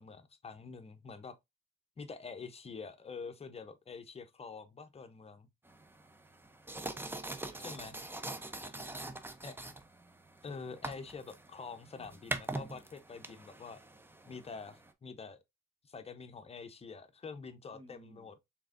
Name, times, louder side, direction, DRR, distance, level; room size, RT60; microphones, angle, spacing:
voice 1, 0.0-1.4 2.0-5.5 7.6-8.0 9.4-9.6 10.4-13.8 14.3-15.4 15.8-18.4, left 5 dB, 30° left, 0.7 m, -46 dB
sound 1, 5.7-14.9, right 2 dB, 10° right, 0.6 m, -44 dB
voice 2, 7.0-8.0 8.5-9.2 17.7-18.3, right 2 dB, 25° right, 1.1 m, -59 dB
4.7 x 3.5 x 2.5 m
cardioid pair, 90°, 20 cm